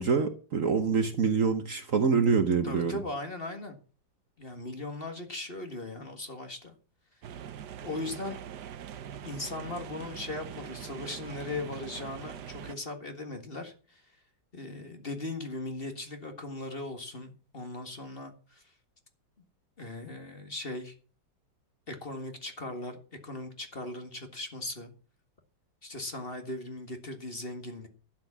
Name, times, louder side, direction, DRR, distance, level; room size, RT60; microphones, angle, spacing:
voice 1, 0.0-3.0, right 5 dB, 50° right, 1.3 m, -26 dB
voice 2, 2.6-3.8 4.4-6.7 7.8-8.5 9.2-14.0 14.5-18.6 19.8-20.9 21.9-24.9 25.8-27.9, left 2 dB, 30° left, 2.0 m, -38 dB
sound 1, 7.2-12.7, right 9 dB, 70° right, 1.5 m, -43 dB
12.0 x 7.7 x 7.3 m
omnidirectional pair, 1.9 m